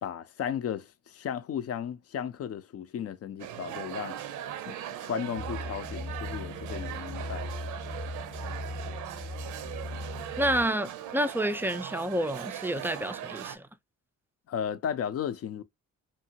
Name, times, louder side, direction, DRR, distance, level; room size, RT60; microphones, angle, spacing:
voice 1, 0.0-4.2 4.7-4.8 5.0-7.4 14.5-15.6, left 8 dB, 50° left, 0.5 m, -35 dB
sound 1, 3.4-13.6, right 11 dB, 80° right, 0.5 m, -39 dB
sound 2, 5.4-10.6, left 2 dB, 15° left, 0.8 m, -38 dB
voice 2, 10.4-13.7, right 1 dB, 5° right, 0.3 m, -29 dB
2.8 x 2.5 x 2.7 m
cardioid pair, 90°, 30 cm